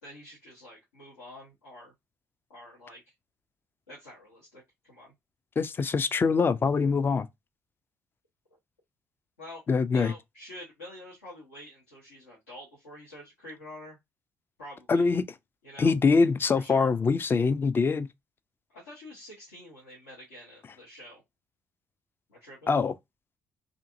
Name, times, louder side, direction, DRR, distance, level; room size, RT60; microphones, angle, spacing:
voice 1, 0.0-1.9 2.5-3.1 3.9-5.1 9.4-14.0 14.6-15.1 15.6-15.9 16.5-16.9 18.7-21.2 22.3-22.7, left 1 dB, 80° left, 1.0 m, -47 dB
voice 2, 5.6-7.3 9.7-10.1 14.9-15.2 15.8-18.1 22.7-22.9, left 4 dB, 25° left, 0.3 m, -24 dB
2.5 x 2.5 x 2.5 m
figure-of-eight pair, 45°, 8 cm